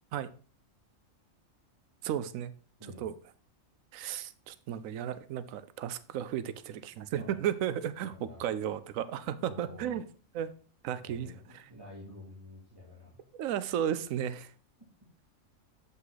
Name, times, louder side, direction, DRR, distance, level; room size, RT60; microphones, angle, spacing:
voice 1, 2.0-2.5 3.0-3.1 3.9-10.0 10.3-10.5 10.8-11.7 13.4-14.5, right 10 dB, 90° right, 14 dB, 1.0 m, -34 dB
voice 2, 8.1-8.4 9.4-10.0 11.0-13.3, left 1 dB, 20° right, -7 dB, 2.4 m, -49 dB
7.5 x 5.6 x 4.0 m, 0.40 s
omnidirectional pair, 1.4 m